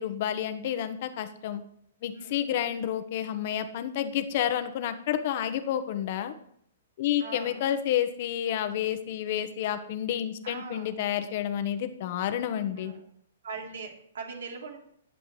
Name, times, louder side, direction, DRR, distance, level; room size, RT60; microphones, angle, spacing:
voice 1, 0.0-1.6 2.0-6.3 7.0-12.9, left 10 dB, 45° left, 10 dB, 1.1 m, -30 dB
voice 2, 7.2-7.6 10.4-10.9 12.8-13.0 13.4-14.8, right 5 dB, 80° right, 0 dB, 3.5 m, -41 dB
21.5 x 7.7 x 3.3 m, 0.70 s
hypercardioid pair, 155°, 0 cm